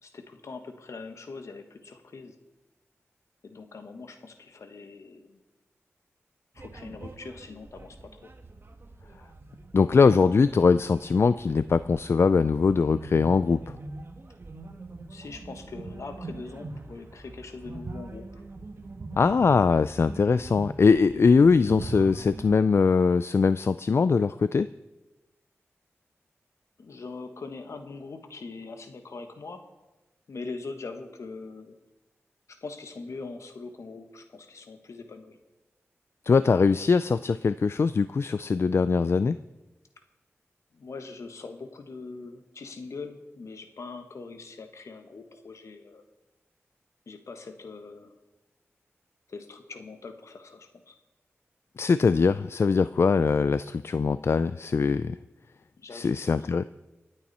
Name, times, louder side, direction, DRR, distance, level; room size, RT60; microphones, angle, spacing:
voice 1, 0.0-2.3 3.4-5.4 6.5-8.3 15.1-18.3 26.8-29.7 30.3-31.8 32.5-35.4 40.7-46.0 47.1-48.1 49.3-51.0 55.8-56.1, left 4 dB, 75° left, 7 dB, 1.5 m, -42 dB
sound 1, 6.6-22.6, right 3 dB, 50° right, 1.4 m, -43 dB
voice 2, 9.7-13.7 19.2-24.7 36.3-39.4 51.8-55.2 55.9-56.6, left 5 dB, 55° left, 14 dB, 0.4 m, -22 dB
25.5 x 8.9 x 4.3 m, 1.1 s
cardioid pair, 60°, 5 cm